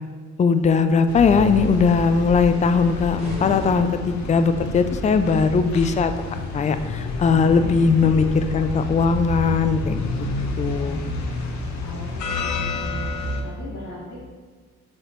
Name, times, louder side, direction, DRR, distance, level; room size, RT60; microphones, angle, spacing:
voice 1, 0.4-6.1 6.5-10.0 10.6-11.0, left 5 dB, 25° left, 9 dB, 0.4 m, -19 dB
sound 1, 1.1-13.4, left 2 dB, 65° left, 0.9 m, -29 dB
sound 2, 3.2-4.6, left 1 dB, 20° right, 1.7 m, -37 dB
voice 2, 11.8-14.2, left 1 dB, 85° left, -11 dB, 1.8 m, -38 dB
7.2 x 4.9 x 3.0 m, 1.5 s
cardioid pair, 90°, 30 cm